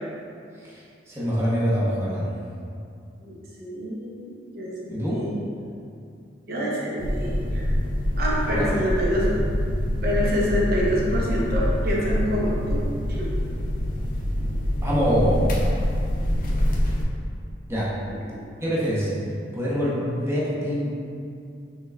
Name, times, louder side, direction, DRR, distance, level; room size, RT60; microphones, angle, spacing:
voice 1, 0.6-2.3 4.9-5.2 8.5-8.9 14.8-15.5 17.7-17.9 18.6-19.1 19.5-20.9, equal, 15° right, -8 dB, 0.8 m, -25 dB
voice 2, 3.2-5.4 6.5-7.6 8.2-9.3 10.0-12.9 13.2-13.3 18.1-18.4, equal, 55° right, -6 dB, 0.8 m, -27 dB
sound 1, 7.0-17.1, equal, 45° left, 0.5 m, -25 dB
5.8 x 3.3 x 2.3 m, 2.4 s
head